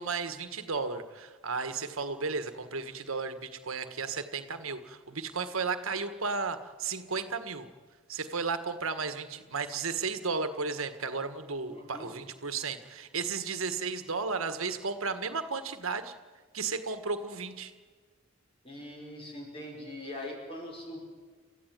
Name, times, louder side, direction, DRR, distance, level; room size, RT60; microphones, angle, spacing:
voice 1, 0.0-7.7 8.1-16.1 16.5-17.7, right 4 dB, 80° right, 9 dB, 1.5 m, -34 dB
voice 2, 11.7-12.1 18.6-21.0, left 1 dB, 25° left, 1 dB, 5.5 m, -42 dB
29.5 x 14.5 x 9.3 m, 1.5 s
head